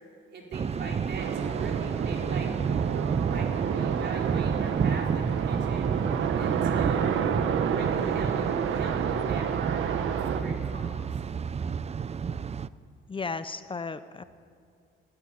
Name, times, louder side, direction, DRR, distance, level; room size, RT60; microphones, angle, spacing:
voice 1, 0.3-2.5 2.8-5.9 6.4-7.3 7.6-11.1, right 3 dB, 60° right, 0 dB, 4.9 m, -40 dB
Thunder, 0.5-12.7, right 6 dB, 30° right, 0.5 m, -30 dB
sound 1, 1.2-10.4, right 7 dB, 80° right, 1.4 m, -30 dB
voice 2, 13.1-14.2, left 4 dB, 25° left, 12 dB, 0.7 m, -34 dB
23.5 x 13.5 x 9.1 m, 2.3 s
cardioid pair, 90°, 20 cm